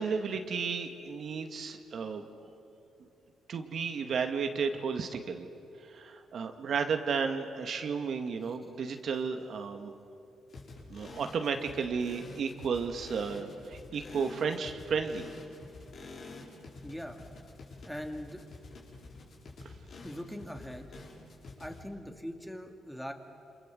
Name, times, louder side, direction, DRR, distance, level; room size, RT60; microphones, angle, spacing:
voice 1, 0.0-2.2 3.5-5.5 5.9-9.9 10.9-15.2 19.6-19.7, right 5 dB, 60° right, 6 dB, 2.0 m, -33 dB
sound 1, 10.5-21.9, left 3 dB, 55° left, 5.8 m, -48 dB
voice 2, 16.8-17.2 17.8-18.5 20.0-20.9 21.6-23.1, equal, 5° left, 4 dB, 2.6 m, -41 dB
28.5 x 26.5 x 7.8 m, 2.8 s
cardioid pair, 105°, 0 cm